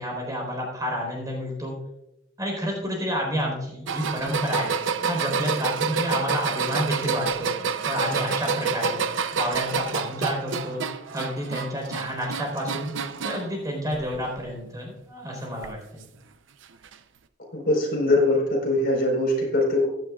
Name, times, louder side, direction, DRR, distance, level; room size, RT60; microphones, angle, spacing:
voice 1, 0.0-1.8 2.4-4.7 5.0-7.5 7.8-9.0 9.3-10.8 11.1-12.9 13.2-16.0, equal, 20° right, 0 dB, 4.2 m, -29 dB
sound 1, 3.9-13.5 13.9-14.5 15.6-15.7 16.8-16.9, right 6 dB, 85° right, 0.6 m, -28 dB
voice 2, 17.5-19.9, left 2 dB, 55° left, -1 dB, 4.4 m, -22 dB
15.5 x 11.5 x 2.4 m, 0.85 s
head